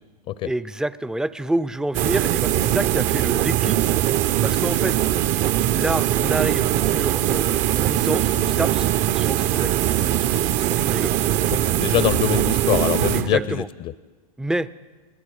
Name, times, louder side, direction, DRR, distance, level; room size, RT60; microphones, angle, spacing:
voice 1, 0.4-3.8 4.4-5.0 5.7-11.1 13.1-13.7 14.4-14.7, right 1 dB, 5° right, 15 dB, 0.5 m, -28 dB
sound 1, 1.9-13.6, right 12 dB, 40° right, 0.8 m, -21 dB
voice 2, 11.5-13.6, left 12 dB, 40° left, 16 dB, 0.7 m, -23 dB
29.5 x 20.5 x 4.9 m, 1.3 s
hypercardioid pair, 115°, 19 cm